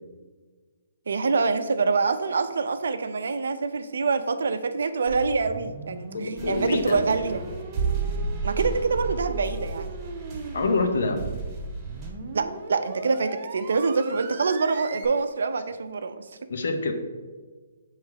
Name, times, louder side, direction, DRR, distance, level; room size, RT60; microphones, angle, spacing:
voice 1, 1.1-7.4 8.4-9.9 12.3-16.3, right 4 dB, 75° right, 10 dB, 0.5 m, -25 dB
sound 1, 5.1-15.1, right 4 dB, 40° right, 0.8 m, -39 dB
voice 2, 6.1-7.0 10.5-11.2 16.5-16.9, left 3 dB, 70° left, 5 dB, 0.9 m, -26 dB
sound 2, 6.4-12.1, right 4 dB, 20° right, 1.5 m, -32 dB
7.1 x 3.2 x 4.7 m, 1.4 s
hypercardioid pair, 145°, 0 cm